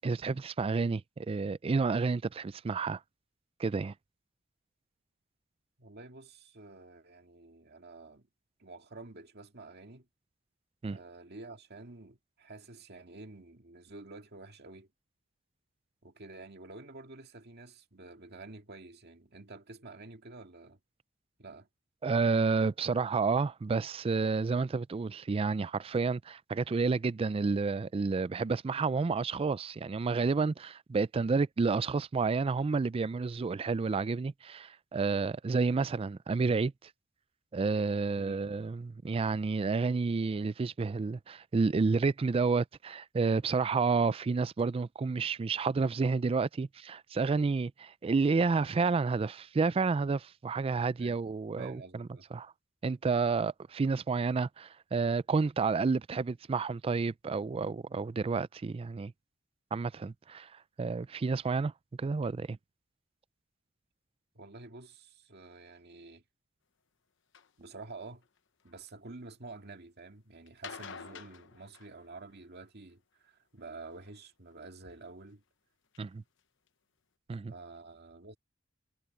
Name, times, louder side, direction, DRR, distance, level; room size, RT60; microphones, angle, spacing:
voice 1, 0.0-3.0 3.6-3.9 10.8-11.0 22.0-36.7 37.5-52.5 52.8-59.1 59.7-60.5 60.8-61.7 62.0-62.6 76.0-76.2 77.3-77.5, right 4 dB, 30° right, 0.3 m, -30 dB
voice 2, 5.8-8.3 8.6-10.1 10.9-14.9 16.0-20.8 21.4-21.7 38.2-38.4 51.0-51.2 51.6-52.3 64.3-66.2 67.6-68.2 68.6-75.4 77.5-78.4, right 3 dB, 55° right, 2.1 m, -49 dB
sound 1, 67.3-67.5 68.2-68.9 70.5-72.4 74.0-74.6 75.3-75.4 75.9-76.0 76.4-76.5 76.7-76.8, left 6 dB, 65° left, 0.9 m, -48 dB
head